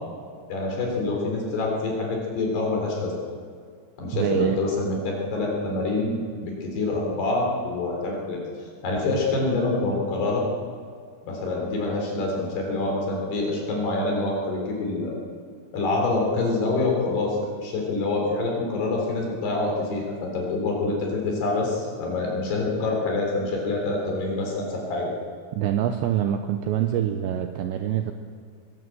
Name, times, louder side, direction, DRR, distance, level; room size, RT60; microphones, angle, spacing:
voice 1, 0.5-3.1 4.0-8.4 8.8-10.4 11.2-15.1 15.7-25.2, left 2 dB, 55° left, 0 dB, 5.5 m, -26 dB
voice 2, 4.1-4.6 25.5-28.1, right 10 dB, 85° right, 7 dB, 2.6 m, -25 dB
22.5 x 16.0 x 7.8 m, 2.1 s
omnidirectional pair, 5.9 m